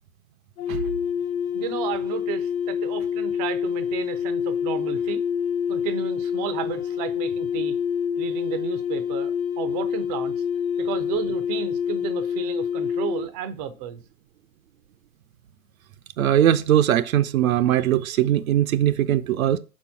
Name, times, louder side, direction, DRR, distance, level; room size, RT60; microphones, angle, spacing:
sound 1, 0.6-13.3, left 8 dB, 80° left, 1.1 m, -27 dB
voice 1, 1.5-5.2 5.7-7.8 8.2-10.4 10.8-14.0, right 9 dB, 25° right, 0.5 m, -33 dB
voice 2, 16.2-19.6, right 11 dB, 70° right, 0.6 m, -20 dB
4.5 x 4.2 x 5.7 m
hypercardioid pair, 135°, 43 cm